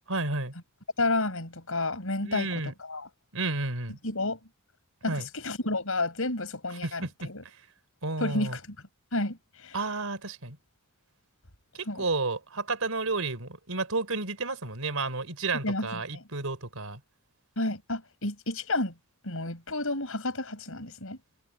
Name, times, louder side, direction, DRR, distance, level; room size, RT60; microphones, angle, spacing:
voice 1, 0.1-0.5 2.2-2.7 3.3-4.0 5.1-5.3 6.8-7.7 8.0-8.6 9.7-10.6 11.7-17.0, right 3 dB, 75° right, 4.1 m, -32 dB
voice 2, 1.0-3.1 4.0-4.4 5.0-7.4 8.2-8.6 9.1-9.8 11.9-12.0 15.6-16.2 17.6-18.9 19.2-21.2, left 2 dB, 70° left, 7.0 m, -31 dB
head